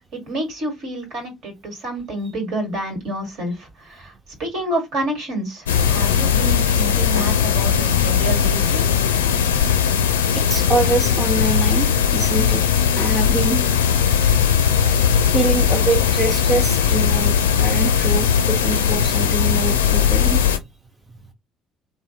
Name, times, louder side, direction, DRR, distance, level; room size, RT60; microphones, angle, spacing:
voice 1, 0.1-4.1 4.4-8.8, right 1 dB, 60° right, 1.6 m, -28 dB
sound 1, 5.7-20.6, left 8 dB, 80° left, 0.4 m, -18 dB
voice 2, 10.3-12.6 12.9-14.3 15.3-20.4, right 3 dB, 25° right, 0.9 m, -25 dB
3.2 x 2.2 x 2.7 m
figure-of-eight pair, 55°, 0 cm